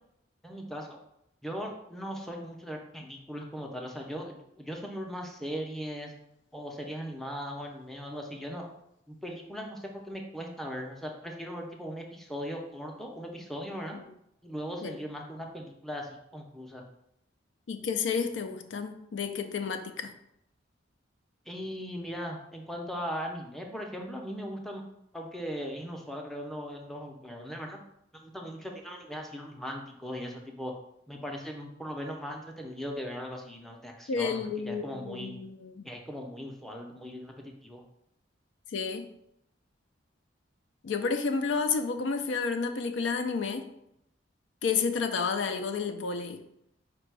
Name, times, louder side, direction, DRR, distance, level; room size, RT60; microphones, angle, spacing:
voice 1, 0.4-1.0 1.4-6.1 6.5-8.7 9.1-14.0 14.4-16.8 21.5-24.8 25.1-27.8 28.1-30.7 31.1-35.4 35.8-37.8, equal, ahead, 1 dB, 0.5 m, -39 dB
voice 2, 17.7-20.1 34.1-35.9 38.7-39.1 40.8-43.7 44.6-46.4, left 5 dB, 75° left, 7 dB, 0.4 m, -31 dB
5.0 x 2.2 x 4.6 m, 0.78 s
head